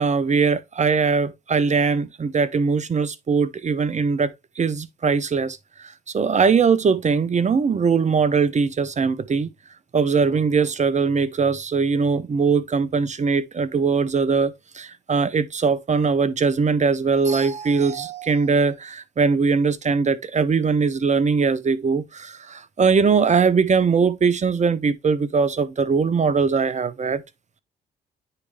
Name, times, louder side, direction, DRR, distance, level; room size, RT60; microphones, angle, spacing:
voice 1, 0.0-5.6 6.1-9.5 9.9-27.2, right 5 dB, 35° right, 0.8 m, -21 dB
9.7 x 3.3 x 3.4 m
hypercardioid pair, 45°, 20 cm